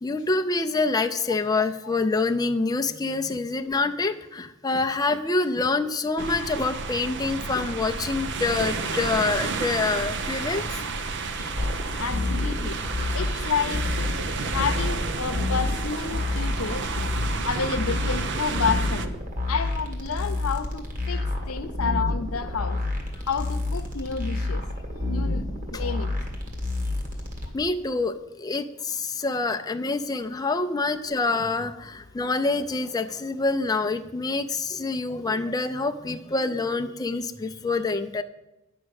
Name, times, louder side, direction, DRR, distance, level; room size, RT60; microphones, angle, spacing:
voice 1, 0.0-10.7 11.3-11.5 27.5-38.2, left 3 dB, 20° left, 0.5 m, -26 dB
sound 1, 6.2-19.1, right 4 dB, 60° right, 0.7 m, -31 dB
sound 2, 11.6-27.5, left 2 dB, 40° right, 1.9 m, -29 dB
voice 2, 12.0-12.8 13.1-16.9 17.4-19.1 19.5-22.8 23.3-24.7 25.1-26.1, left 5 dB, 85° left, 0.7 m, -30 dB
9.9 x 6.2 x 6.5 m
head